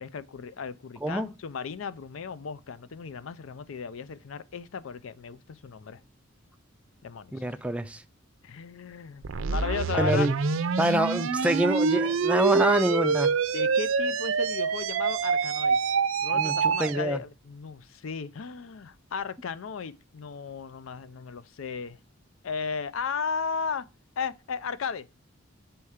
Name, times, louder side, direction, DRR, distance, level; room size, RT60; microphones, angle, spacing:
voice 1, 0.0-6.0 7.0-7.4 8.4-10.3 13.5-15.8 16.2-22.0 22.4-23.9 24.2-25.1, left 5 dB, 70° left, 0.5 m, -35 dB
voice 2, 7.3-8.0 9.9-10.3 10.8-13.3 16.3-16.5 16.8-17.2, right 1 dB, 5° right, 0.4 m, -26 dB
sound 1, 9.2-17.0, right 5 dB, 70° right, 0.5 m, -26 dB
7.0 x 4.4 x 4.9 m
head